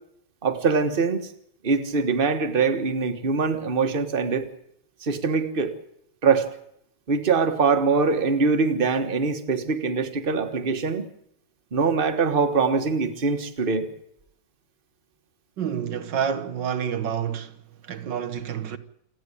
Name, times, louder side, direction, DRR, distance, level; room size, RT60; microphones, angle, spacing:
voice 1, 0.4-1.3 1.6-4.5 5.0-5.7 6.2-6.5 7.1-11.1 11.7-13.9, right 4 dB, 30° right, 1.6 m, -23 dB
voice 2, 15.6-18.8, right 8 dB, 75° right, 1.8 m, -29 dB
28.0 x 9.9 x 10.0 m
omnidirectional pair, 2.0 m